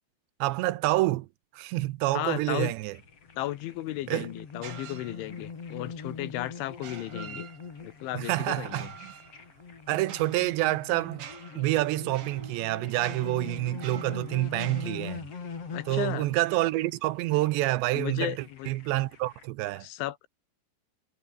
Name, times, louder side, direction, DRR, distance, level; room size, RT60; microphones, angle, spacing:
voice 1, 0.4-1.3 1.5-2.9 4.1-4.3 8.1-9.1 9.9-11.3 11.6-15.3 15.9-18.4 18.7-19.9, right 18 dB, 80° right, 2.9 m, -28 dB
voice 2, 2.1-2.7 3.4-7.5 7.8-8.9 15.7-16.3 18.0-18.7 19.8-20.3, left 15 dB, 85° left, 3.8 m, -34 dB
sound 1, 2.8-19.5, left 5 dB, 35° left, 4.1 m, -43 dB
sound 2, 3.3-10.8, left 2 dB, 10° left, 2.0 m, -58 dB
sound 3, 4.6-5.6 6.7-8.0 8.6-14.9, right 8 dB, 60° right, 1.5 m, -47 dB
omnidirectional pair, 5.3 m